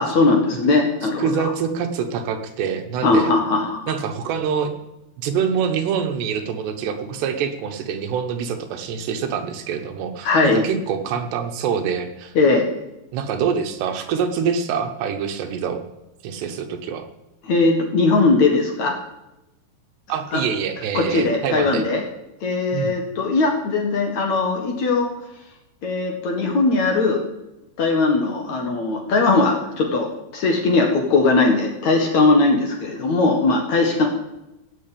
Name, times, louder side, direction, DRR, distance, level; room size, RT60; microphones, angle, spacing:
voice 1, 0.0-1.5 3.0-3.9 10.2-10.7 12.4-12.7 17.4-19.0 20.3-20.4 20.9-22.0 22.4-25.1 25.8-27.2 27.8-34.1, left 3 dB, 50° left, 2 dB, 2.6 m, -19 dB
voice 2, 1.0-3.3 3.9-4.7 5.2-12.3 13.1-15.9 16.2-17.1 20.1-21.8 22.7-22.9, right 7 dB, 80° right, 6 dB, 3.4 m, -25 dB
17.0 x 6.7 x 8.7 m, 0.93 s
omnidirectional pair, 4.8 m